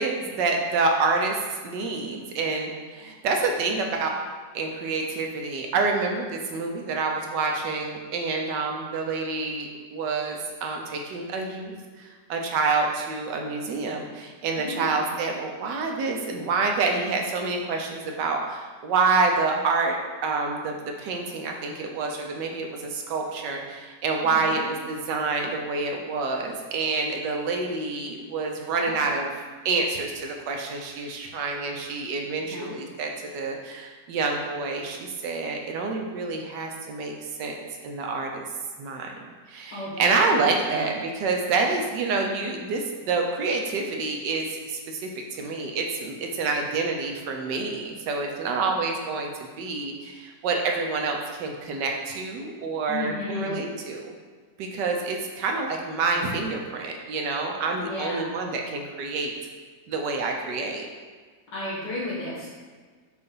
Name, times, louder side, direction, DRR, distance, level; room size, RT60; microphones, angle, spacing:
voice 1, 0.0-1.4 1.6-4.1 4.5-29.3 29.6-37.1 37.4-37.6 37.8-38.4 38.8-39.1 39.5-45.1 45.4-54.1 54.6-59.3 59.9-60.9, right 4 dB, 80° right, 1 dB, 1.4 m, -27 dB
voice 2, 14.5-15.1 24.2-24.6 28.7-29.1 32.4-32.7 39.7-40.0 40.7-40.9 52.9-53.7 57.8-58.3 61.5-62.5, left 2 dB, 85° left, -8 dB, 2.6 m, -34 dB
6.7 x 2.6 x 5.4 m, 1.5 s
omnidirectional pair, 1.9 m